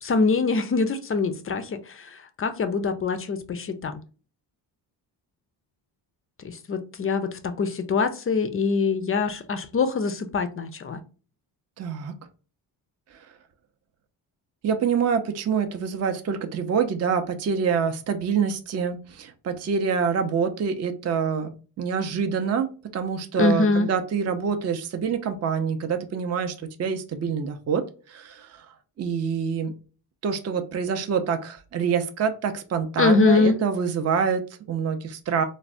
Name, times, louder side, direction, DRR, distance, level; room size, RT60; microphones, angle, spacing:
voice 1, 0.0-4.0 6.4-11.0 23.4-23.9 33.0-33.6, left 4 dB, 30° left, 0.4 m, -24 dB
voice 2, 11.8-12.1 14.6-28.7 29.0-29.7 30.2-35.4, right 6 dB, 35° right, 0.5 m, -26 dB
3.2 x 2.1 x 2.5 m
supercardioid pair, 65°, 49 cm